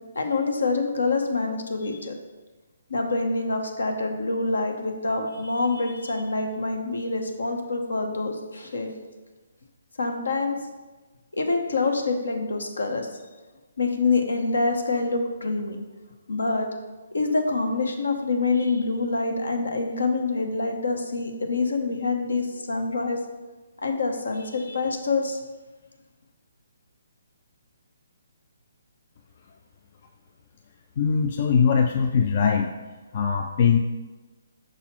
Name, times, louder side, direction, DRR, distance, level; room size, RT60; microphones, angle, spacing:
voice 1, 0.1-2.2 2.9-8.9 10.0-10.6 11.3-13.2 13.8-15.8 16.3-16.7 17.1-23.2 23.8-25.4, left 3 dB, 75° left, 4 dB, 0.9 m, -26 dB
voice 2, 31.0-32.7 33.1-33.8, left 6 dB, 45° left, 4 dB, 0.4 m, -21 dB
6.1 x 4.0 x 4.4 m, 1.2 s
figure-of-eight pair, 140°, 0 cm